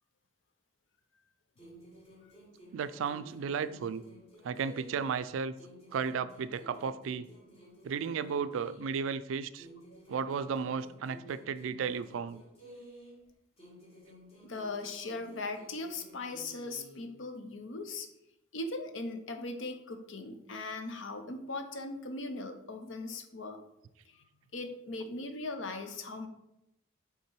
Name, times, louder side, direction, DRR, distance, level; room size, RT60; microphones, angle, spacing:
sound 1, 1.6-5.3 5.6-9.2 9.6-13.3 13.6-17.2, equal, 30° left, 1.5 m, -54 dB
voice 1, 2.7-4.0 4.4-5.5 5.9-7.3 7.8-9.7 10.1-12.4, right 6 dB, 75° right, 14 dB, 0.3 m, -34 dB
voice 2, 14.4-18.1 18.5-23.6 24.1-24.2 24.5-26.3, left 2 dB, 65° left, 7 dB, 0.7 m, -39 dB
5.7 x 3.7 x 4.6 m, 0.84 s
head